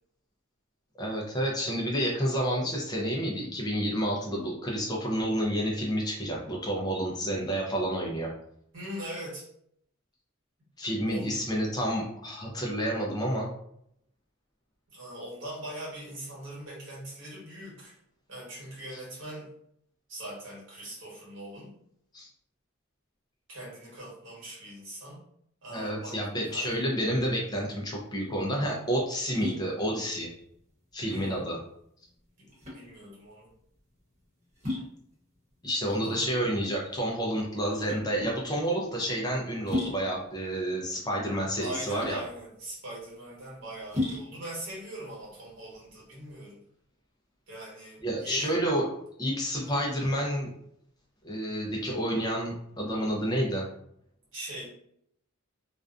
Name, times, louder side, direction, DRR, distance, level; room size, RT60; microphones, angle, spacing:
voice 1, 1.0-8.3 10.8-13.5 22.1-22.3 25.7-30.3 30.9-31.6 35.6-42.2 48.0-48.9 49.2-50.5 51.2-53.7, equal, 20° left, -2 dB, 0.5 m, -29 dB
voice 2, 8.7-9.5 11.1-11.4 14.9-17.9 18.3-19.5 20.1-21.7 23.5-25.2 25.6-26.2 26.4-26.8 31.1-31.5 32.4-33.5 35.8-36.2 41.6-46.6 47.5-48.6 49.5-49.7 54.3-54.7, right 1 dB, 65° right, -5 dB, 1.2 m, -41 dB
sound 1, 27.8-46.4, left 2 dB, 35° right, 1.0 m, -39 dB
2.5 x 2.2 x 2.4 m, 0.70 s
head